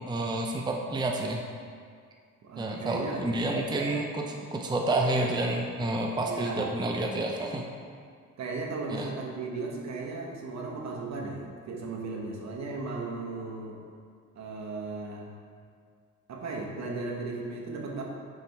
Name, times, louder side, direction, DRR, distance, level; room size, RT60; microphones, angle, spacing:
voice 1, 0.0-1.4 2.6-7.7 8.9-9.1, right 2 dB, 15° right, 1 dB, 0.6 m, -29 dB
voice 2, 2.4-3.3 6.2-6.8 8.4-13.8 14.3-15.3 16.3-18.0, right 3 dB, 60° right, 0 dB, 1.2 m, -36 dB
5.9 x 4.9 x 4.6 m, 2.1 s
cardioid pair, 90°, 30 cm